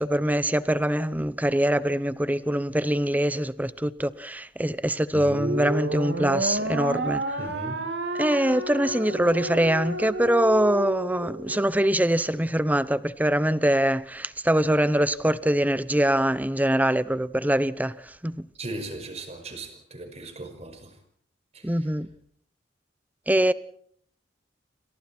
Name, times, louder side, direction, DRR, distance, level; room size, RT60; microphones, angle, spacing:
voice 1, 0.0-7.4 8.1-18.5 21.6-22.1 23.3-23.5, right 1 dB, 10° right, 0.9 m, -23 dB
sound 1, 5.1-11.7, right 1 dB, 75° right, 3.1 m, -31 dB
voice 2, 7.4-7.8 18.6-21.0 21.5-21.7, right 2 dB, 35° right, 5.7 m, -37 dB
28.5 x 25.5 x 4.4 m
head